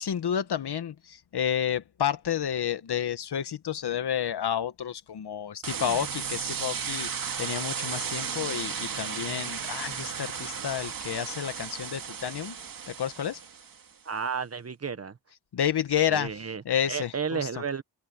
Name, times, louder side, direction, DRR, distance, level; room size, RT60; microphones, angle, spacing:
voice 1, 0.0-12.5 12.9-13.4 15.5-17.5, left 9 dB, 65° left, 1.5 m, -30 dB
sound 1, 5.6-13.8, right 7 dB, 50° right, 1.9 m, -34 dB
voice 2, 14.0-15.2 16.1-16.6 16.9-17.8, right 6 dB, 35° right, 1.1 m, -32 dB
open air
cardioid pair, 100°, 43 cm